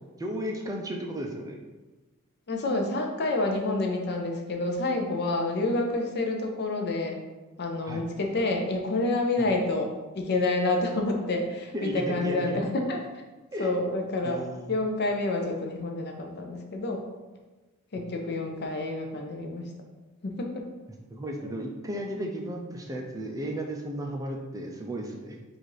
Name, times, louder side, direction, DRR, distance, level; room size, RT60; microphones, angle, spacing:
voice 1, 0.2-1.6 7.9-8.0 9.4-9.5 11.7-12.6 13.5-13.7 14.2-14.8 18.0-18.1 21.1-25.4, equal, 15° right, 1 dB, 0.4 m, -34 dB
voice 2, 2.5-7.2 7.6-13.0 13.6-14.4 14.7-17.0 17.9-19.7 20.2-20.6 21.4-21.5, left 2 dB, 50° left, 2 dB, 0.6 m, -28 dB
4.1 x 2.5 x 4.7 m, 1.2 s
head